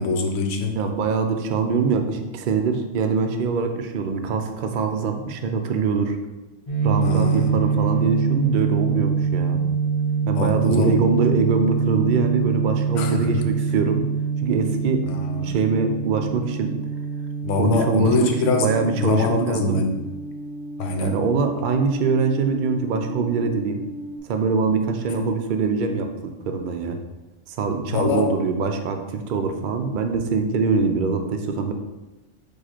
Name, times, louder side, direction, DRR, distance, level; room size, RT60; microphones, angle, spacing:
voice 1, 0.0-0.8 7.0-7.5 10.3-10.9 13.0-13.4 15.1-15.5 17.4-18.7 19.0-20.0 20.8-21.2 25.1-25.2 27.9-28.3, left 4 dB, 70° left, 4 dB, 1.0 m, -23 dB
voice 2, 0.8-6.2 6.8-9.6 10.2-14.1 14.4-15.1 15.4-16.7 17.6-19.9 21.0-23.9 24.2-27.0 27.5-31.7, right 4 dB, 65° right, 5 dB, 0.4 m, -23 dB
sound 1, 6.7-24.2, right 6 dB, 30° left, 1.0 m, -26 dB
4.8 x 2.5 x 4.3 m, 1.1 s
omnidirectional pair, 1.4 m